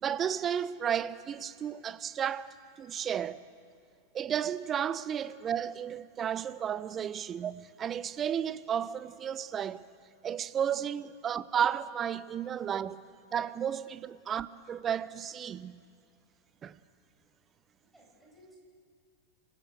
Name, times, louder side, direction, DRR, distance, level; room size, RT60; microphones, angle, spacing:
voice 1, 0.0-3.4 4.1-9.9 10.2-13.0 13.3-15.8 16.6-16.8, right 9 dB, 25° right, 0.6 m, -33 dB
voice 2, 17.8-18.6, equal, 5° right, 7.2 m, -60 dB
27.0 x 15.5 x 6.4 m
figure-of-eight pair, 90°, 0 cm